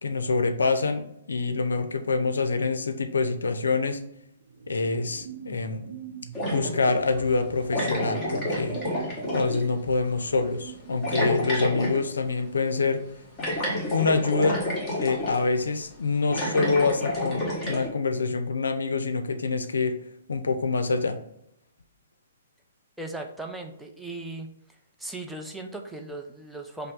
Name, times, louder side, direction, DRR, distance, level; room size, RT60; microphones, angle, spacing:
voice 1, 0.0-4.0 4.7-5.8 6.5-8.8 9.3-13.0 13.9-14.7 15.0-20.0 20.3-21.2, left 4 dB, 85° left, 9 dB, 0.4 m, -26 dB
sound 1, 4.4-11.5, right 8 dB, 75° right, 0.6 m, -42 dB
sound 2, 6.3-7.0 7.7-9.6 11.0-12.0 13.4-15.4 16.2-17.9, left 1 dB, 20° left, 1.3 m, -29 dB
voice 2, 23.0-24.5 25.0-26.9, right 2 dB, 5° right, 2 dB, 0.5 m, -37 dB
5.4 x 2.0 x 3.5 m, 0.76 s
hypercardioid pair, 130°, 0 cm